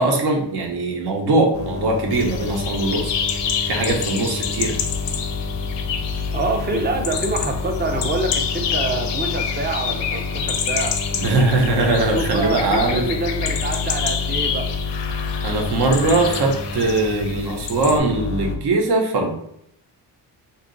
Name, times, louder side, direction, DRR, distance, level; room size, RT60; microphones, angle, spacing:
voice 1, 0.0-3.1 3.7-4.7 11.2-13.0 15.4-19.3, right 2 dB, 65° right, 2 dB, 0.8 m, -20 dB
sound 1, 1.5-18.6, left 4 dB, 35° left, 0.4 m, -29 dB
sound 2, 2.1-18.0, left 7 dB, 85° left, 0.6 m, -28 dB
voice 2, 6.3-10.9 12.1-14.7, right 2 dB, 25° right, 4 dB, 0.5 m, -26 dB
2.7 x 2.3 x 3.8 m, 0.74 s
cardioid pair, 110°, 43 cm